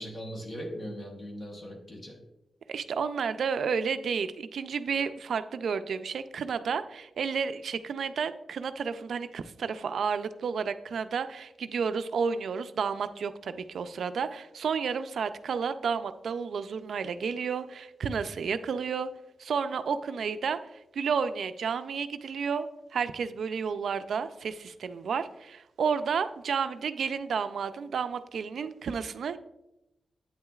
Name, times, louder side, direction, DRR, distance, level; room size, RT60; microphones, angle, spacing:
voice 1, 0.0-2.2, equal, 35° left, 2 dB, 1.0 m, -39 dB
voice 2, 2.7-19.1 19.4-29.4, right 6 dB, 85° right, 11 dB, 0.3 m, -31 dB
8.6 x 8.6 x 2.3 m, 0.92 s
wide cardioid pair, 160°, 0 cm